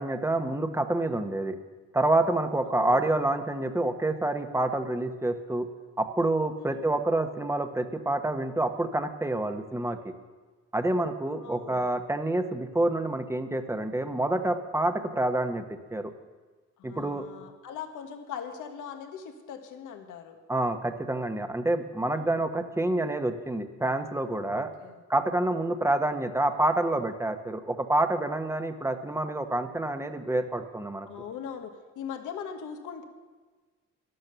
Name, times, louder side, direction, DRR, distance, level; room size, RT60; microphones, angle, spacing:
voice 1, 0.0-1.6 1.9-5.7 6.0-10.1 10.7-16.1 16.8-17.2 20.5-24.7 25.1-31.1, right 2 dB, 10° right, 7 dB, 1.1 m, -28 dB
voice 2, 2.7-3.1 6.6-6.9 11.4-11.8 16.8-20.4 22.0-22.3 24.4-25.0 31.1-33.0, left 7 dB, 85° left, 5 dB, 1.4 m, -41 dB
12.0 x 12.0 x 6.9 m, 1.4 s
cardioid pair, 90°, 30 cm